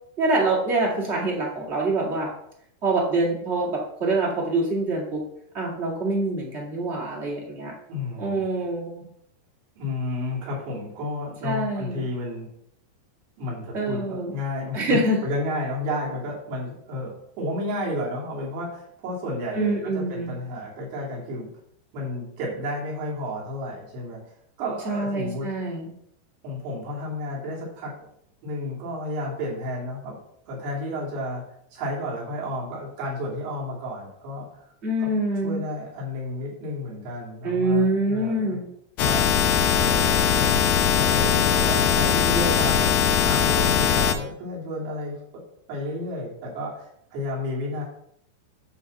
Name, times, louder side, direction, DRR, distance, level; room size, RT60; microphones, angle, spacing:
voice 1, 0.2-2.3 2.8-5.2 5.5-7.7 8.2-9.0 11.4-12.1 13.7-14.3 14.7-15.2 19.5-20.3 24.8-25.9 34.8-35.6 37.4-38.7, right 2 dB, 50° right, -3 dB, 0.8 m, -25 dB
voice 2, 7.6-8.4 9.8-12.5 13.4-15.0 15.2-21.5 21.9-24.2 24.6-25.5 26.4-27.9 28.4-30.2 30.5-31.4 31.7-34.5 35.0-35.1 35.4-38.6 39.0-39.3 39.7-45.2 45.7-47.8, left 1 dB, 70° right, -5 dB, 5.0 m, -31 dB
sound 1, 39.0-44.2, left 8 dB, 80° left, 2.5 m, -20 dB
11.0 x 3.7 x 7.0 m, 0.72 s
omnidirectional pair, 5.3 m